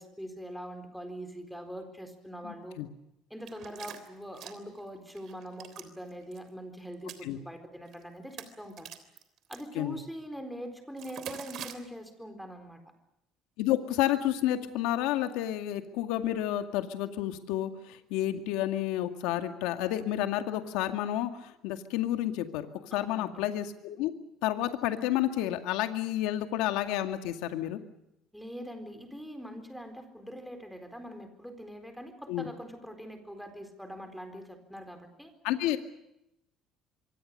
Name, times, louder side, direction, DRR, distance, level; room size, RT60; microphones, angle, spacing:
voice 1, 0.0-2.8 3.3-8.9 9.5-12.8 22.9-23.3 28.3-35.3, equal, ahead, 7 dB, 4.2 m, -43 dB
voice 2, 2.4-2.9 7.2-7.4 9.8-10.0 13.6-24.1 24.4-27.8 32.3-32.5 35.4-35.8, left 13 dB, 85° left, 7 dB, 2.2 m, -30 dB
sound 1, 3.5-4.8 5.2-5.9 6.2-6.4 6.9-7.2 7.9-8.0 8.3-9.6 11.0-11.7, right 10 dB, 50° right, 3.4 m, -43 dB
26.0 x 24.0 x 6.7 m, 0.85 s
cardioid pair, 145°, 0 cm